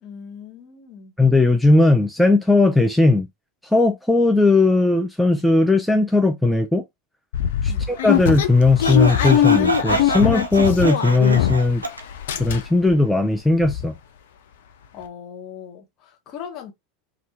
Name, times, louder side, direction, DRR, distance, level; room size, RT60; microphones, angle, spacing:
voice 1, 0.0-1.2 7.7-8.0 14.9-16.7, left 7 dB, 45° left, 1.2 m, -39 dB
voice 2, 1.2-3.3 3.7-6.8 7.6-7.7 8.0-11.8 12.4-13.9, left 2 dB, 5° left, 0.5 m, -17 dB
sound 1, 7.3-11.8 12.1-12.9 13.3-13.4 13.6-13.8, left 9 dB, 65° left, 0.4 m, -21 dB
Sawing, 8.8-12.0, right 2 dB, 90° right, 0.4 m, -27 dB
2.7 x 2.4 x 3.6 m
figure-of-eight pair, 80°, 0 cm